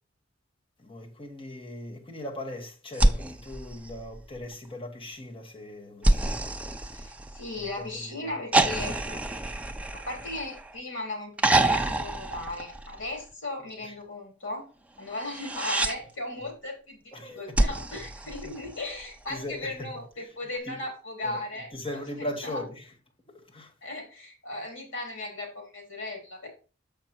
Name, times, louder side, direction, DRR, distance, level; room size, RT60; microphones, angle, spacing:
voice 1, 0.8-6.2 7.6-8.3 17.1-17.6 18.3-18.5 19.3-19.9 20.7-20.8 21.2-21.4 21.7-22.8 23.5-23.7, left 1 dB, 25° left, 1.5 m, -39 dB
sound 1, 2.9-4.5 6.0-7.7 8.5-10.8 11.4-13.2 15.2-16.0 17.5-19.0 20.6-20.7, right 2 dB, 5° right, 0.5 m, -27 dB
voice 2, 6.9-9.2 9.9-14.7 15.0-22.7 23.8-26.5, left 2 dB, 75° left, 3.4 m, -37 dB
6.9 x 5.3 x 4.4 m
head